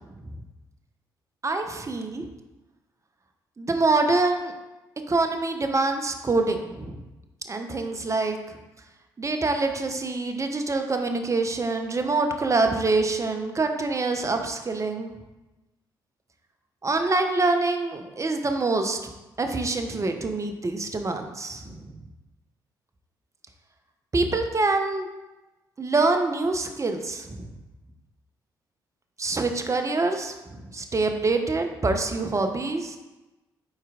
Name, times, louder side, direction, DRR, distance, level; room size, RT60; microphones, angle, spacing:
voice 1, 1.4-2.3 3.6-4.5 5.1-7.0 7.5-8.4 9.2-15.1 16.8-19.0 19.4-21.8 24.1-25.1 25.8-27.5 29.2-33.0, right 3 dB, 30° right, 5 dB, 0.9 m, -25 dB
8.9 x 4.4 x 2.5 m, 1.1 s
hypercardioid pair, 40°, 11 cm